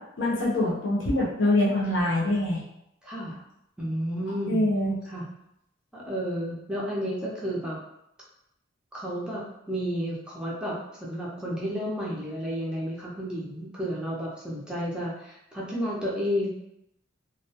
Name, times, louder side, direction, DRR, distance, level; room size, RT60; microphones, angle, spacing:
voice 1, 0.2-2.6 4.5-4.9, left 1 dB, 70° left, -3 dB, 0.6 m, -24 dB
voice 2, 3.0-3.4 3.8-4.7 5.1-5.2 5.9-7.8 8.9-16.5, equal, 5° right, -6 dB, 0.4 m, -32 dB
2.2 x 2.0 x 2.8 m, 0.81 s
head